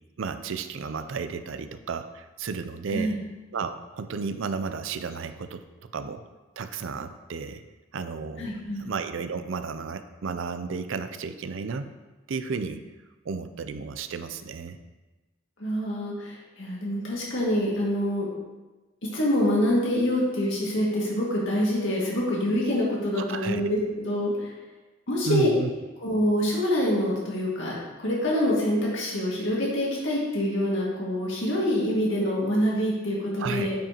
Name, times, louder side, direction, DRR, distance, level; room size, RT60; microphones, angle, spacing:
voice 1, 0.2-3.2 3.5-6.2 6.6-7.6 7.9-11.9 12.3-12.8 13.2-14.8 23.2-23.6 25.3-25.7 33.4-33.7, right 5 dB, 70° right, 10 dB, 0.4 m, -33 dB
voice 2, 8.4-8.9 15.6-18.3 19.1-24.5 25.1-25.5 26.0-27.7 28.0-33.8, equal, 70° left, -5 dB, 2.0 m, -26 dB
8.8 x 5.4 x 2.9 m, 1.2 s
head